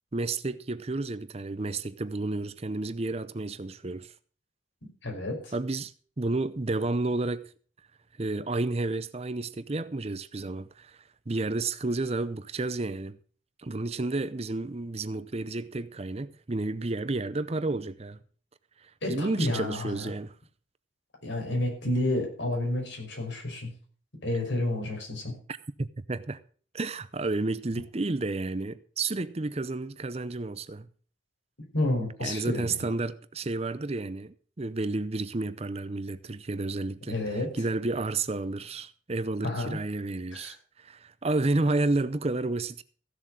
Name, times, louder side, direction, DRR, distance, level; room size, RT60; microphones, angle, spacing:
voice 1, 0.1-4.1 5.5-7.4 8.2-13.2 13.6-18.2 18.8-20.4 25.5-26.4 26.7-30.9 32.2-37.2 37.6-42.8, right 2 dB, 35° right, 0.7 m, -31 dB
voice 2, 5.0-5.5 19.0-20.1 21.2-23.7 24.2-25.3 31.7-32.9 37.1-37.5 39.4-39.8 40.3-40.6, left 1 dB, 80° left, 5.4 m, -30 dB
15.5 x 7.2 x 6.3 m
head